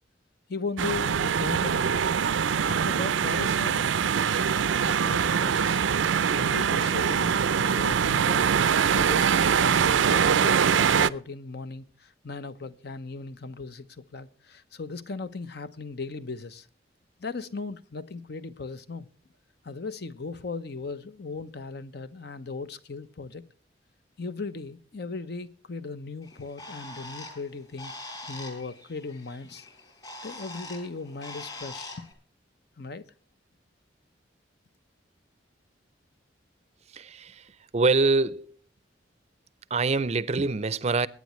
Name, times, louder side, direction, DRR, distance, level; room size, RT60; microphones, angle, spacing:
voice 1, 0.5-2.0 2.7-3.9 4.8-5.8 6.3-8.5 8.9-16.7 17.2-19.1 19.6-23.4 24.2-29.7 30.2-32.1 32.8-33.0, left 3 dB, 60° left, 0.9 m, -37 dB
sound 1, 0.8-11.1, right 7 dB, 85° right, 0.5 m, -23 dB
Bird, 26.2-32.1, left 2 dB, 25° left, 4.2 m, -43 dB
voice 2, 36.9-38.6 39.7-41.1, right 3 dB, 35° right, 0.5 m, -25 dB
22.5 x 9.4 x 3.1 m
head